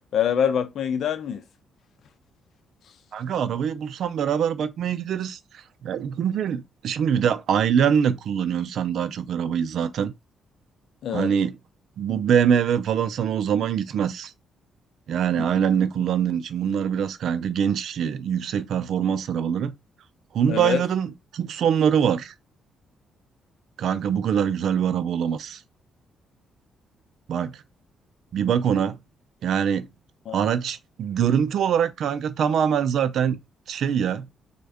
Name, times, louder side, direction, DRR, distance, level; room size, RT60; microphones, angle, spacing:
voice 1, 0.1-1.4 11.0-11.3 15.4-15.5 20.5-20.8 30.3-30.4, left 8 dB, 65° left, 0.6 m, -25 dB
voice 2, 3.1-5.4 5.8-10.1 11.1-11.5 12.0-14.3 15.1-19.7 20.3-22.3 23.8-25.6 27.3-27.6 28.3-29.0 29.4-29.9 30.3-33.4 33.7-34.3, right 8 dB, 70° right, 0.4 m, -23 dB
3.5 x 2.2 x 3.4 m
cardioid pair, 90°, 0 cm